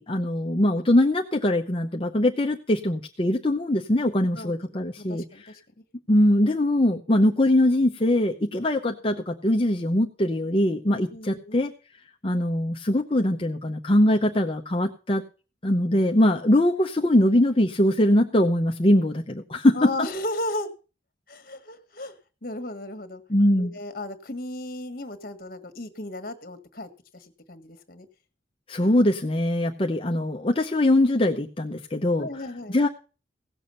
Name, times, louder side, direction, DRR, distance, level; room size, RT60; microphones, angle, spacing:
voice 1, 0.0-5.2 6.1-11.7 12.2-15.2 15.6-19.9 23.3-23.8 28.7-32.3 32.7-32.9, left 1 dB, 30° left, 2 dB, 0.7 m, -22 dB
voice 2, 5.0-5.6 11.1-11.6 19.7-20.7 21.3-22.1 22.4-23.2 23.6-28.1 32.2-32.8, left 1 dB, 50° left, 8 dB, 1.6 m, -35 dB
17.0 x 7.0 x 5.6 m, 0.36 s
head